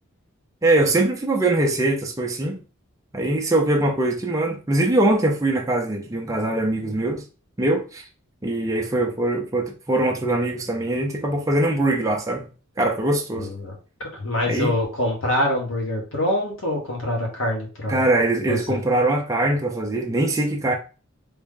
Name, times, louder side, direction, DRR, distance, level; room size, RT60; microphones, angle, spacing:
voice 1, 0.6-2.6 3.1-7.2 7.6-8.0 8.4-12.5 12.8-13.5 14.5-14.7 17.9-20.7, right 2 dB, 15° right, 0.4 m, -22 dB
voice 2, 13.4-13.7 14.2-18.0 18.5-18.8, left 1 dB, 65° left, 1.2 m, -25 dB
3.5 x 2.2 x 3.6 m
head